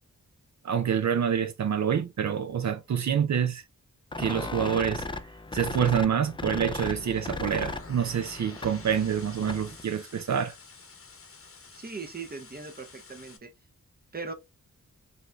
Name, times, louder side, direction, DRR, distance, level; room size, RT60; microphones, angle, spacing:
voice 1, 0.6-3.6 4.2-5.0 5.5-10.5, right 8 dB, 60° right, 0.5 m, -27 dB
sound 1, 4.1-9.8, left 3 dB, 15° left, 0.3 m, -37 dB
sound 2, 6.8-13.4, left 4 dB, 45° left, 0.9 m, -48 dB
voice 2, 11.7-13.5 14.1-14.3, right 4 dB, 30° right, 0.7 m, -39 dB
5.2 x 3.2 x 2.3 m
wide cardioid pair, 130°, 33 cm